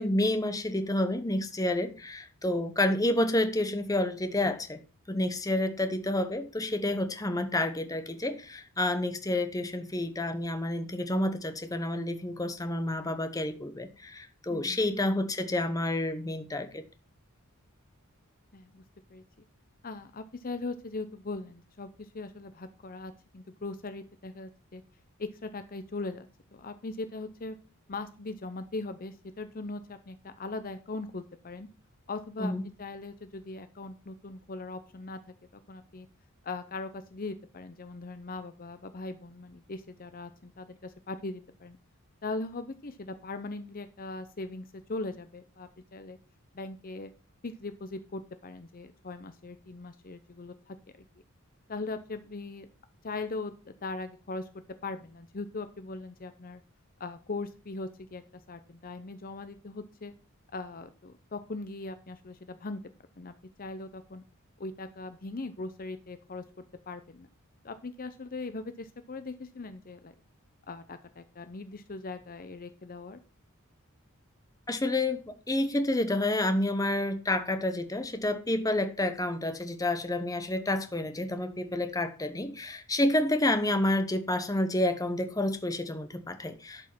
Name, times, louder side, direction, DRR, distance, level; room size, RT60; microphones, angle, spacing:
voice 1, 0.0-4.8 5.1-16.8 32.4-32.6 74.7-86.9, left 1 dB, 15° left, 1.0 m, -29 dB
voice 2, 14.5-14.8 18.5-18.8 19.1-19.2 19.8-24.8 25.2-26.3 26.5-27.6 27.9-31.7 32.1-32.5 32.8-35.2 35.7-36.1 36.4-41.8 42.2-46.2 46.5-47.1 47.4-50.8 51.7-52.7 53.0-53.5 53.8-54.5 54.8-56.6 57.0-58.2 58.5-60.1 60.5-62.8 63.2-64.2 64.6-66.4 66.9-67.3 67.6-70.1 70.7-73.2, left 3 dB, 40° left, 0.7 m, -40 dB
11.5 x 5.4 x 5.9 m
head